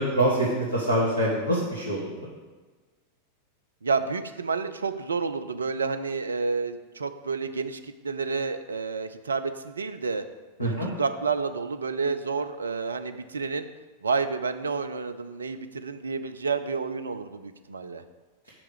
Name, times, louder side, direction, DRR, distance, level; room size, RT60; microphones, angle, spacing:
voice 1, 0.0-2.3 10.6-10.9, right 1 dB, 85° left, -6 dB, 1.6 m, -25 dB
voice 2, 3.8-10.2 10.6-13.7 14.0-18.0, right 4 dB, 75° right, 10 dB, 0.5 m, -30 dB
5.9 x 4.9 x 6.3 m, 1.3 s
figure-of-eight pair, 90°, 0 cm